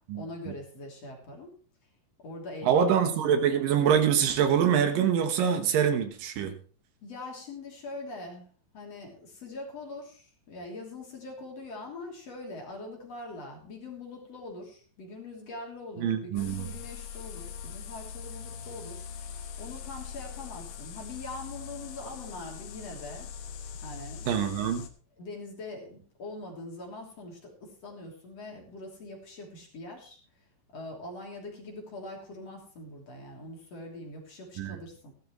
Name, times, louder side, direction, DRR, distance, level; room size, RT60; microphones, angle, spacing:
voice 1, 0.1-1.5 2.2-3.1 7.0-8.5 8.7-23.3 23.8-24.3 25.2-30.2 30.7-35.1, left 2 dB, 45° left, 0 dB, 4.1 m, -43 dB
voice 2, 2.6-6.5 16.0-16.7 24.3-24.9 34.6-34.8, right 8 dB, 75° right, 7 dB, 2.9 m, -25 dB
sound 1, 16.4-24.9, left 7 dB, 65° left, 2.6 m, -42 dB
16.0 x 13.0 x 3.1 m, 0.39 s
omnidirectional pair, 4.0 m